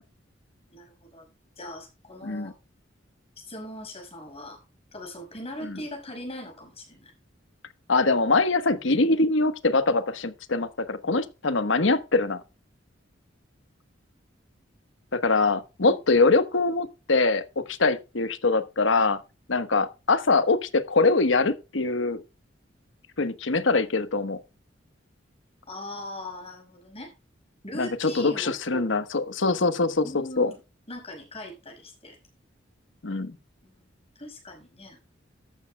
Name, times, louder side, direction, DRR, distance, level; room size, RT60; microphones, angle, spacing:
voice 1, 0.7-1.3 1.6-2.5 3.4-4.6 4.9-7.1 15.8-16.0 25.7-27.1 27.6-29.0 30.0-30.6 30.9-32.2 33.6-33.8 34.2-35.0, left 1 dB, 30° left, 5.8 m, -40 dB
voice 2, 2.2-2.5 5.6-5.8 7.9-12.4 15.1-19.2 19.5-22.2 23.2-24.4 27.7-30.5 33.0-33.4, left 3 dB, 80° left, 1.2 m, -23 dB
13.5 x 12.0 x 2.2 m
head